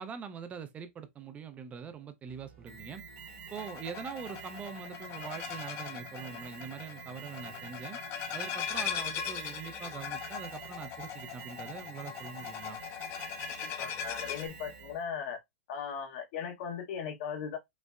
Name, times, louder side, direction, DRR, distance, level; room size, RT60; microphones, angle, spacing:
voice 1, 0.0-3.0 3.5-8.0 8.3-12.8, right 7 dB, 20° right, 0.4 m, -43 dB
sound 1, 2.3-15.0, right 4 dB, 85° right, 2.0 m, -58 dB
Alarm, 2.7-15.1, right 5 dB, 45° right, 0.9 m, -48 dB
sound 2, 3.5-14.5, left 8 dB, 35° left, 0.7 m, -39 dB
voice 2, 13.6-15.4 15.7-17.6, left 7 dB, 50° left, 1.0 m, -38 dB
5.2 x 2.0 x 2.4 m
hypercardioid pair, 135°, 7 cm